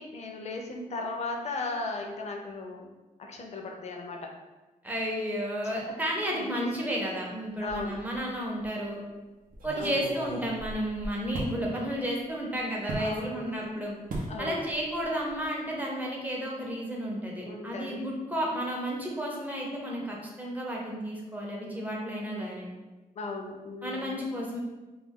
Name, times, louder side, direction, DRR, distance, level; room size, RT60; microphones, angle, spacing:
voice 1, 0.0-2.9 3.2-4.3 6.3-6.9 7.6-8.0 9.7-10.1 13.0-13.9 14.3-14.7 17.4-18.1 23.2-24.2, left 3 dB, 50° left, 2 dB, 0.4 m, -37 dB
voice 2, 4.8-9.0 9.6-14.0 14.4-22.7 23.8-24.6, equal, 10° right, -2 dB, 0.5 m, -32 dB
sound 1, 7.7-8.3 8.6-8.7 9.5-11.6 12.9-13.1 14.1-14.4 14.7-15.0 15.3-15.5, right 1 dB, 75° right, 0.6 m, -37 dB
2.3 x 2.2 x 3.3 m, 1.2 s
wide cardioid pair, 160°, 15 cm